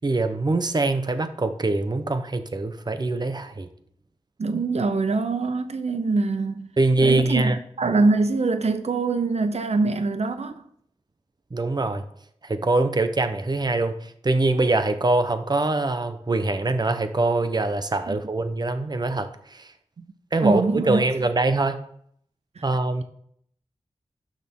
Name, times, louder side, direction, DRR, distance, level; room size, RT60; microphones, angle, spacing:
voice 1, 0.0-3.7 6.8-7.6 11.5-12.0 12.4-19.7 20.3-21.8 22.6-23.0, right 2 dB, 40° right, 0.9 m, -23 dB
voice 2, 4.4-6.7 7.0-10.5 18.1-18.2 20.0-20.1 20.4-21.0 22.6-22.7, right 3 dB, 75° right, 0.7 m, -23 dB
12.0 x 6.5 x 3.7 m
wide cardioid pair, 70°, 11 cm